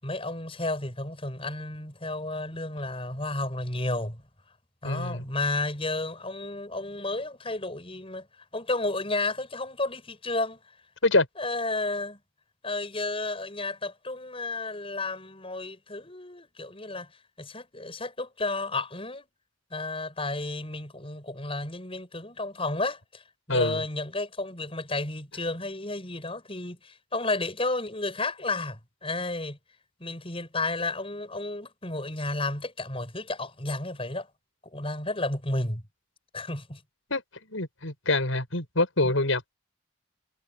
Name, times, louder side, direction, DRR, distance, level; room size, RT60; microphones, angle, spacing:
voice 1, 0.0-4.2 4.8-8.3 8.5-10.6 11.4-12.2 12.6-17.1 17.4-19.3 19.7-29.6 30.0-34.3 34.7-35.8 36.3-36.8 39.0-39.1, left 2 dB, 30° left, 8.0 m, -32 dB
voice 2, 4.8-5.2 11.0-11.3 23.5-23.8 37.1-37.2 37.5-39.5, left 2 dB, 85° left, 6.8 m, -25 dB
head